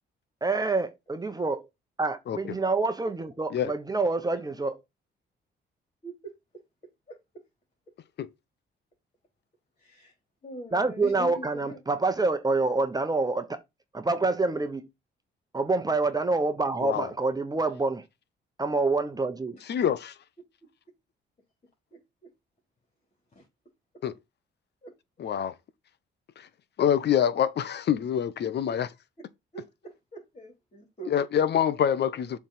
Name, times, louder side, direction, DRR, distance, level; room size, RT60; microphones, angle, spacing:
voice 1, 0.4-1.7 2.0-4.8 10.7-13.6 13.9-14.9 15.5-18.0 18.6-19.6, right 3 dB, 20° right, 1.1 m, -27 dB
voice 2, 6.0-6.3 7.1-7.4 9.8-10.2 10.4-11.8 19.5-19.6 21.9-22.3 23.3-23.5 24.8-24.9 29.5-31.2, right 1 dB, 35° left, 3.7 m, -43 dB
voice 3, 19.7-20.1 24.0-24.1 25.2-25.5 26.4-26.5 26.8-28.9 31.1-32.4, left 9 dB, 60° left, 0.9 m, -26 dB
7.3 x 3.5 x 5.8 m
cardioid pair, 90°, 20 cm